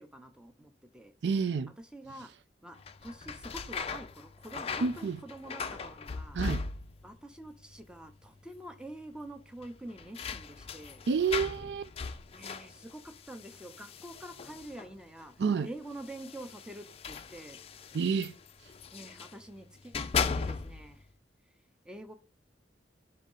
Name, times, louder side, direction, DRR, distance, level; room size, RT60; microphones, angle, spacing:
voice 1, 0.0-1.1 1.9-2.3 2.6-2.8 3.0-6.4 7.0-11.0 12.3-15.3 15.6-17.6 18.9-21.1 21.8-22.1, right 1 dB, 5° right, 0.8 m, -46 dB
voice 2, 1.2-1.7 4.8-5.2 6.3-6.6 11.1-11.9 15.4-15.7 17.9-18.4, right 5 dB, 70° right, 0.4 m, -29 dB
sound 1, 2.8-7.2 7.4-8.1 8.4-8.5 9.6-15.0 15.9-19.4 19.8-21.0, left 5 dB, 35° left, 0.4 m, -38 dB
5.4 x 3.8 x 5.5 m
head